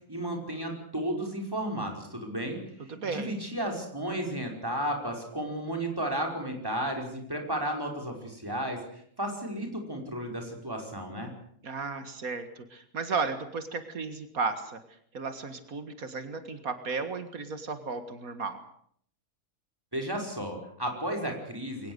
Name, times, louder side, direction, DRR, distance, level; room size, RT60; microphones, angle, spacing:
voice 1, 0.1-2.6 3.0-8.8 9.2-11.3 19.9-21.9, right 1 dB, 15° right, 2 dB, 5.4 m, -33 dB
voice 2, 2.9-3.3 11.6-14.8 15.1-18.6, right 4 dB, 85° right, 9 dB, 2.3 m, -34 dB
23.0 x 19.0 x 8.1 m, 0.63 s
omnidirectional pair, 1.5 m